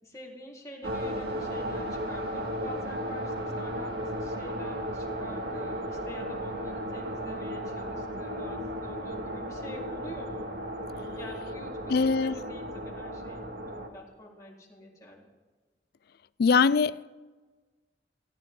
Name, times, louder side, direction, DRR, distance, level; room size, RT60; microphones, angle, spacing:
voice 1, 0.0-10.5 11.2-13.4 13.7-15.3, left 1 dB, 20° left, 4.1 m, -46 dB
sound 1, 0.8-13.9, equal, 65° right, 2.1 m, -35 dB
voice 2, 11.9-12.3 16.4-17.1, left 5 dB, 60° left, 0.4 m, -22 dB
20.5 x 16.5 x 3.8 m
head